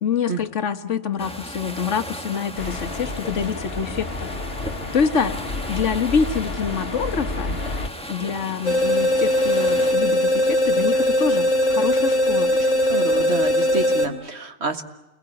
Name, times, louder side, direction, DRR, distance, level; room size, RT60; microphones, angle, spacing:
voice 1, 0.0-4.3 4.9-5.4 5.7-7.5 8.1-12.5, left 6 dB, 80° left, 10 dB, 1.6 m, -26 dB
sound 1, 1.2-9.9, equal, 5° left, 1.6 m, -37 dB
sound 2, 2.6-7.9, left 2 dB, 55° left, 2.1 m, -31 dB
sound 3, 8.6-14.1, left 1 dB, 35° left, 2.7 m, -20 dB
voice 2, 12.9-14.8, right 3 dB, 65° right, 7 dB, 2.0 m, -28 dB
28.5 x 21.5 x 9.7 m, 1.0 s
omnidirectional pair, 1.2 m